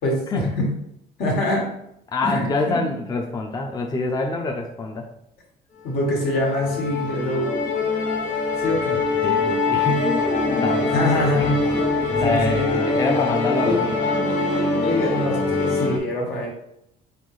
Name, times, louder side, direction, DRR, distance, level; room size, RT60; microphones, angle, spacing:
voice 1, 0.0-0.7 1.2-1.7 2.2-2.5 2.7-2.8 5.8-7.6 8.6-9.0 10.9-11.4 12.2-12.8 13.6-13.8 14.8-16.5, left 1 dB, 75° left, -2 dB, 1.7 m, -24 dB
voice 2, 2.1-5.1 9.2-10.4 10.6-11.7 12.1-13.9, left 3 dB, 25° left, 2 dB, 0.5 m, -26 dB
Musical instrument, 5.9-16.0, left 3 dB, 45° left, 1.3 m, -23 dB
4.2 x 3.9 x 3.2 m, 0.78 s
cardioid pair, 110°, 17 cm